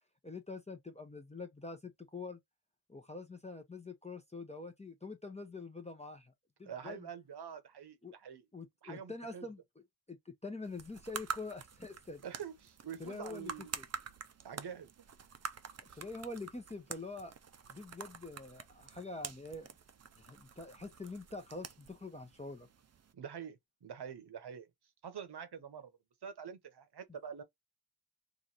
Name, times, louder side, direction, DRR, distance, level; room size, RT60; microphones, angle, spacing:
voice 1, 0.2-2.4 2.9-6.3 6.6-7.1 8.0-8.1 8.5-9.6 10.1-12.2 13.0-13.8 15.8-17.3 17.7-19.7 20.2-22.7, left 3 dB, 15° left, 0.6 m, -45 dB
voice 2, 6.6-8.4 8.8-9.5 12.2-13.7 14.4-14.9 15.9-16.0 23.1-24.7 25.0-25.9 26.2-27.4, right 8 dB, 85° right, 0.9 m, -46 dB
sound 1, 10.6-23.1, right 6 dB, 40° right, 0.5 m, -47 dB
3.1 x 2.5 x 3.9 m
wide cardioid pair, 85°, 38 cm